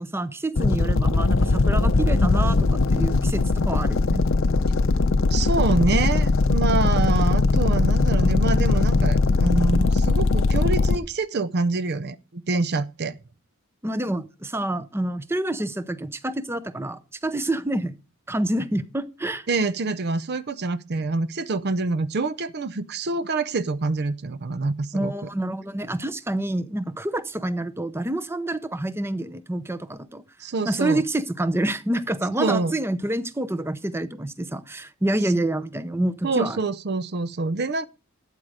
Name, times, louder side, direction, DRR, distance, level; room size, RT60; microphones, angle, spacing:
voice 1, 0.0-4.2 13.8-17.9 18.3-19.5 24.9-30.2 30.6-36.6, right 1 dB, 10° right, 0.7 m, -27 dB
sound 1, 0.6-11.0, left 3 dB, 60° left, 0.7 m, -20 dB
voice 2, 5.3-13.2 19.5-25.1 30.4-31.0 32.4-32.7 36.2-37.9, right 3 dB, 50° right, 0.6 m, -26 dB
12.0 x 8.8 x 4.9 m
head